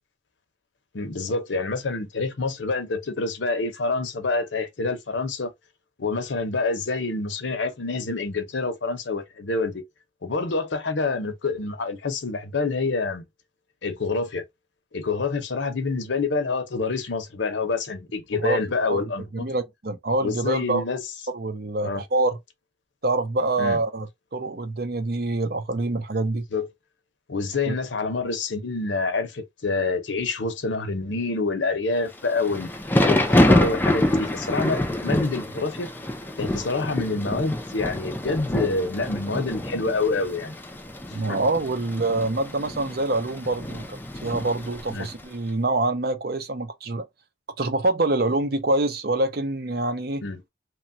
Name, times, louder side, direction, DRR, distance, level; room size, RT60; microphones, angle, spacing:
voice 1, 0.9-5.5 6.0-9.8 10.2-13.2 13.8-14.4 14.9-19.5 20.2-21.0 21.8-22.0 23.6-23.8 26.5-26.7 27.3-32.7 33.0-35.9 36.4-40.6 41.1-41.4 44.9-45.1 50.2-50.4, left 3 dB, 75° left, 0.7 m, -27 dB
voice 2, 19.4-20.8 21.3-22.4 23.0-24.1 24.3-26.4 27.7-27.8 41.1-47.1 47.6-50.2, right 2 dB, 55° right, 0.6 m, -25 dB
Thunder / Rain, 32.2-45.2, left 1 dB, 10° left, 0.4 m, -26 dB
3.0 x 2.3 x 2.6 m
head